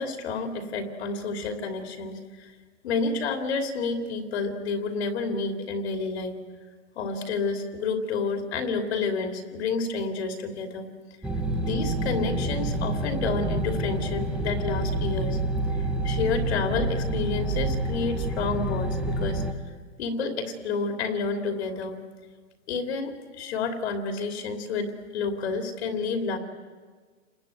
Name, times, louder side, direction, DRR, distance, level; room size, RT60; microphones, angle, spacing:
voice 1, 0.0-2.5 2.8-6.4 7.0-10.9 11.6-15.4 16.0-19.4 20.0-22.0 22.7-26.4, left 4 dB, 50° left, 5 dB, 2.8 m, -30 dB
sound 1, 11.2-19.5, right 1 dB, ahead, 0.8 m, -28 dB
29.0 x 20.5 x 9.3 m, 1.5 s
hypercardioid pair, 160°, 42 cm